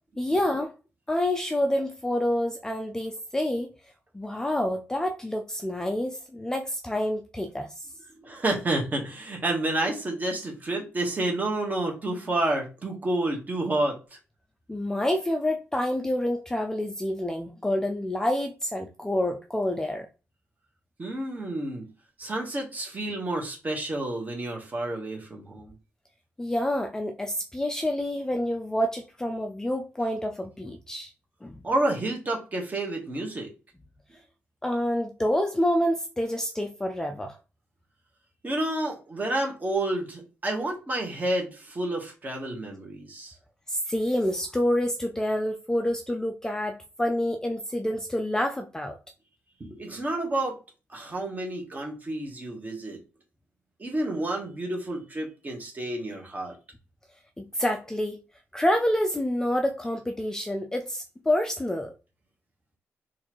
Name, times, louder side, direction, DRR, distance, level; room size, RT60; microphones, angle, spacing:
voice 1, 0.2-0.7 1.1-3.7 4.1-7.7 14.7-20.1 26.4-31.1 31.4-31.6 34.6-37.4 43.7-49.0 57.4-58.2 58.5-61.9, left 1 dB, 10° left, 0.4 m, -28 dB
voice 2, 8.2-13.9 21.0-21.9 22.2-25.7 31.6-33.5 38.4-43.3 49.6-50.6 50.9-53.0 53.8-56.6, right 1 dB, 30° right, 1.3 m, -29 dB
4.0 x 2.6 x 3.0 m
cardioid pair, 105°, 5 cm